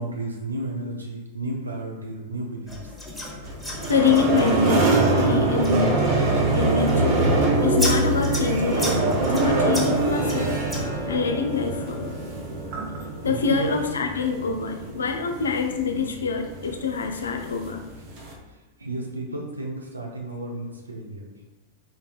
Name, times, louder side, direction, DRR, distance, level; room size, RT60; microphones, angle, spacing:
voice 1, 0.0-2.7 13.2-13.7 18.8-21.3, right 1 dB, 80° right, 0 dB, 0.7 m, -32 dB
sound 1, 2.7-11.3, left 1 dB, ahead, 0.8 m, -35 dB
sound 2, 3.4-18.3, right 2 dB, 45° right, 0.8 m, -24 dB
voice 2, 3.9-6.0 6.5-7.2 7.6-10.5 11.1-12.2 13.2-17.8, left 5 dB, 70° left, 5 dB, 0.4 m, -25 dB
4.1 x 3.2 x 2.3 m, 1.1 s
figure-of-eight pair, 90°, 0 cm